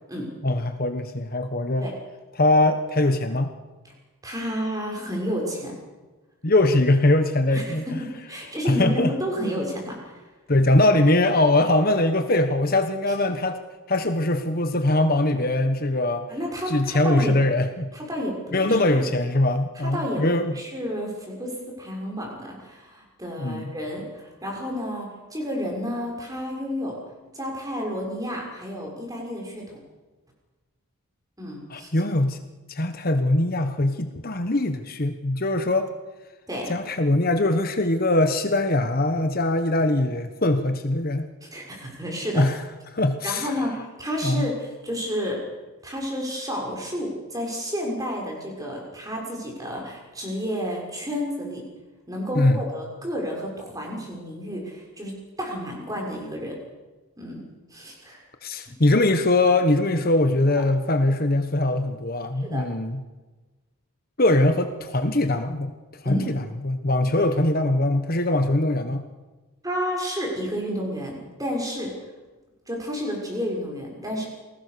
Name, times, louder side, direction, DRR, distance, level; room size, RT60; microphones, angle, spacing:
voice 1, 0.4-1.9 2.3-3.5 6.4-8.0 8.6-9.1 10.5-13.6 13.9-16.3 16.7-17.9 18.5-20.5 23.4-23.7 31.7-32.4 32.7-35.9 36.7-41.3 42.4-42.6 42.9-43.5 44.2-44.5 52.3-52.6 58.4-63.0 64.2-65.7 66.0-69.0, left 2 dB, 40° left, 7 dB, 1.3 m, -22 dB
voice 2, 4.2-5.7 7.5-10.2 16.3-17.3 17.9-19.1 19.8-20.2 20.5-27.0 27.3-29.8 31.4-31.9 36.5-36.7 41.4-42.4 43.2-45.4 45.8-51.6 52.1-56.5 57.2-57.4 57.7-58.2 62.4-62.7 66.0-66.3 67.1-67.2 69.6-71.9 72.7-74.3, equal, 15° right, 0 dB, 6.5 m, -31 dB
29.0 x 19.5 x 6.9 m, 1.2 s
head